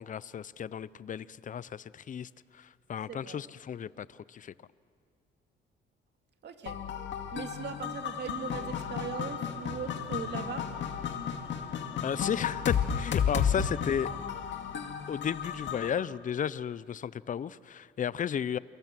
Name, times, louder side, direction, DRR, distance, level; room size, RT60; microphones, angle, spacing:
voice 1, 0.0-4.5 12.0-14.1 15.1-18.6, left 8 dB, 40° left, 18 dB, 0.6 m, -34 dB
voice 2, 3.1-3.4 6.4-6.8 7.3-10.7, right 7 dB, 60° right, 6 dB, 2.4 m, -39 dB
sound 1, 6.7-15.9, left 7 dB, 65° left, 2.2 m, -33 dB
29.0 x 23.5 x 7.6 m, 2.2 s
cardioid pair, 90°, 20 cm